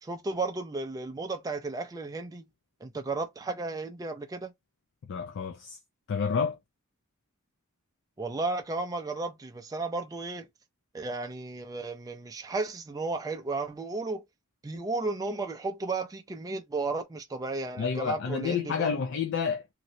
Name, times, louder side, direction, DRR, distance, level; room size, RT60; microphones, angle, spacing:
voice 1, 0.0-2.4 2.8-4.5 8.2-10.5 10.9-14.2 14.6-19.0, right 3 dB, 15° right, 0.4 m, -34 dB
voice 2, 5.1-5.8 6.1-6.6 17.8-19.7, left 6 dB, 55° left, 0.4 m, -29 dB
3.0 x 2.6 x 2.7 m
head